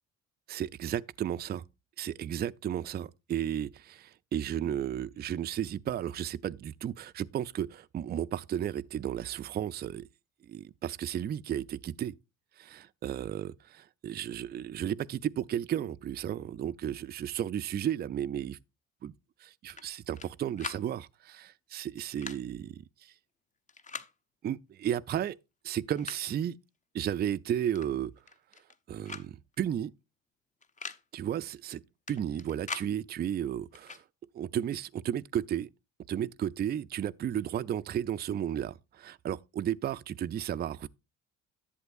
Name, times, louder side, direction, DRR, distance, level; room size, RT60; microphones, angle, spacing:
voice 1, 0.5-1.6 2.0-10.1 10.4-12.1 12.6-18.6 19.0-19.1 19.4-23.1 24.4-25.4 25.6-26.6 26.9-28.1 28.9-29.9 31.1-31.8 32.1-34.0 34.3-35.7 36.1-40.9, right 10 dB, 25° right, 0.4 m, -33 dB
sound 1, 19.7-20.3 20.6-20.8 22.0-22.4 23.7-24.1 25.2-25.3 25.7-26.4 27.7-27.9 28.2-28.8 29.1-29.3 29.5-29.6 30.6-31.0 32.1-32.9 33.7-34.0, left 4 dB, 20° left, 0.8 m, -42 dB
11.0 x 7.9 x 2.5 m
hypercardioid pair, 55°, 39 cm